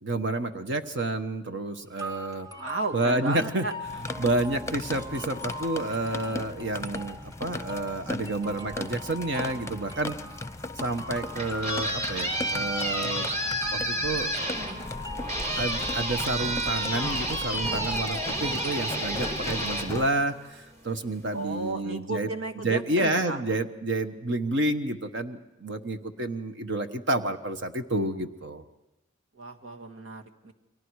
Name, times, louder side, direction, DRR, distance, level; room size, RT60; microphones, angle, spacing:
voice 1, 0.0-2.5 2.9-3.7 4.2-10.1 10.8-13.3 13.7-14.4 15.6-22.3 22.6-28.6, right 2 dB, 65° right, 7 dB, 1.2 m, -29 dB
sound 1, 2.0-19.9, left 1 dB, 20° right, 1.8 m, -42 dB
voice 2, 2.5-3.7 21.3-23.4 29.3-30.5, right 3 dB, 90° right, 4 dB, 2.0 m, -34 dB
sound 2, 3.8-20.1, left 2 dB, 15° left, 0.7 m, -38 dB
sound 3, 11.1-20.8, right 1 dB, 45° right, 4.1 m, -31 dB
30.0 x 23.5 x 4.8 m, 0.96 s
head